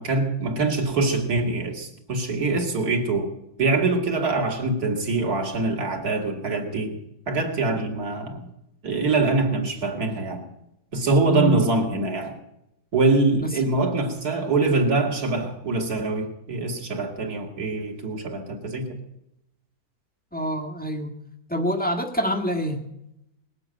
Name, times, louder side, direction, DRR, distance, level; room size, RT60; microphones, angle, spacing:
voice 1, 0.0-3.3 3.6-7.0 7.3-8.5 8.8-10.5 10.9-12.4 12.9-19.0, right 3 dB, 50° right, 3 dB, 2.9 m, -24 dB
voice 2, 11.2-11.6 13.4-13.5 20.3-21.1 21.5-22.8, equal, 5° left, 2 dB, 1.6 m, -26 dB
20.0 x 8.0 x 9.0 m, 0.84 s
omnidirectional pair, 2.1 m